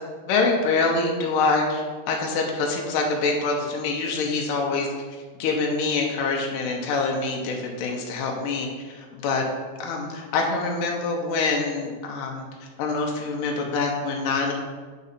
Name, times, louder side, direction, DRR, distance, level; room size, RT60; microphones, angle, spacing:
voice 1, 0.3-4.9 5.4-9.5 9.8-12.4 12.8-14.5, left 3 dB, 75° left, 0 dB, 2.4 m, -25 dB
8.4 x 4.0 x 4.1 m, 1.5 s
omnidirectional pair, 4.0 m